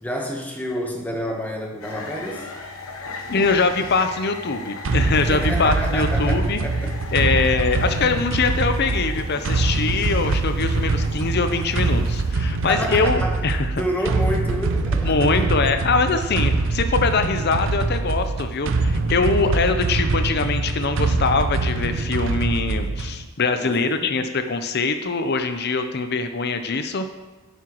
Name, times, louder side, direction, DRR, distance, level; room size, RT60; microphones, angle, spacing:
voice 1, 0.0-2.5 5.3-6.9 12.6-13.4 13.7-15.5 23.6-24.2, equal, 10° left, 0 dB, 1.1 m, -29 dB
sound 1, 1.8-12.3, left 3 dB, 85° left, 1.0 m, -38 dB
voice 2, 3.3-6.6 7.1-13.7 15.0-27.0, left 4 dB, 50° left, 8 dB, 0.6 m, -23 dB
sound 2, 4.8-23.3, right 3 dB, 65° right, 0.5 m, -23 dB
9.6 x 7.9 x 3.0 m, 1.2 s
head